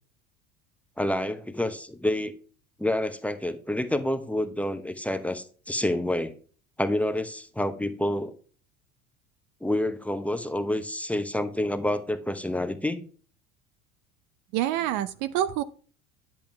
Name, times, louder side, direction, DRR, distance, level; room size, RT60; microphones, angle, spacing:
voice 1, 1.0-2.3 2.8-6.3 6.8-8.3 9.6-13.0, left 1 dB, 5° left, 9 dB, 1.0 m, -28 dB
voice 2, 14.5-15.6, right 12 dB, 45° right, 15 dB, 0.7 m, -27 dB
10.0 x 7.6 x 3.5 m, 0.40 s
figure-of-eight pair, 70°, 41 cm